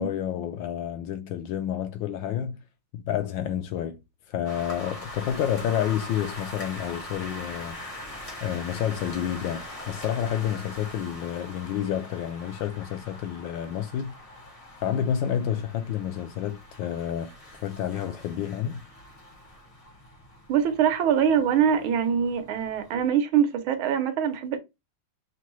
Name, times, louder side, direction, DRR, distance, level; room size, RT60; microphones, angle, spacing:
voice 1, 0.0-2.6 2.9-4.0 4.3-7.8 8.4-14.2 14.8-17.3 17.6-18.8, left 10 dB, 75° left, 1.2 m, -29 dB
sound 1, 4.4-23.1, left 1 dB, 40° left, 0.5 m, -42 dB
voice 2, 20.5-24.6, right 8 dB, 75° right, 1.6 m, -23 dB
5.8 x 2.2 x 3.0 m
omnidirectional pair, 2.3 m